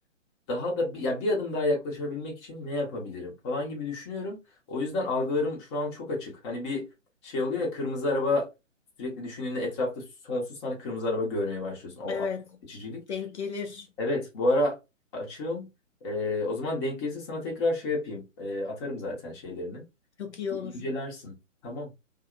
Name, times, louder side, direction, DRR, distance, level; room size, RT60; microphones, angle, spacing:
voice 1, 0.5-4.4 4.7-6.9 7.2-8.5 9.0-12.2 12.7-13.0 14.0-14.8 15.1-15.7 16.0-19.8 20.8-21.3 21.6-21.9, left 2 dB, 20° left, 0.8 m, -30 dB
voice 2, 12.1-12.6 13.1-13.9 20.2-20.9, left 6 dB, 60° left, 0.5 m, -34 dB
2.7 x 2.0 x 2.4 m
figure-of-eight pair, 135°, 39 cm